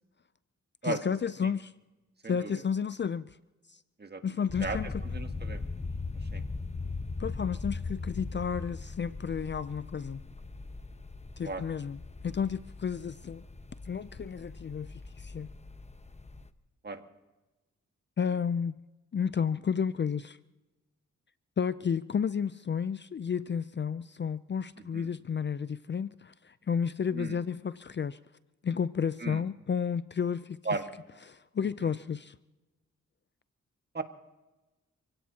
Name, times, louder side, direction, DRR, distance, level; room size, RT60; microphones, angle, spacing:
voice 1, 0.8-1.7 2.2-3.3 3.7-3.8 4.2-4.9 7.2-10.2 11.4-13.4 13.9-15.5 18.2-18.8 19.1-20.4 21.6-28.2 28.6-30.6 31.3-32.4, left 7 dB, 40° left, 0.5 m, -32 dB
sound 1, 4.5-16.5, left 3 dB, 20° left, 0.9 m, -39 dB
voice 2, 5.1-5.7 6.3-6.4 11.4-11.6 16.8-17.0 24.9-25.1 27.1-27.4 29.2-29.4 30.7-30.8 31.8-31.9 33.9-34.0, right 3 dB, 35° right, 1.8 m, -35 dB
28.5 x 17.0 x 2.9 m
cardioid pair, 60°, 30 cm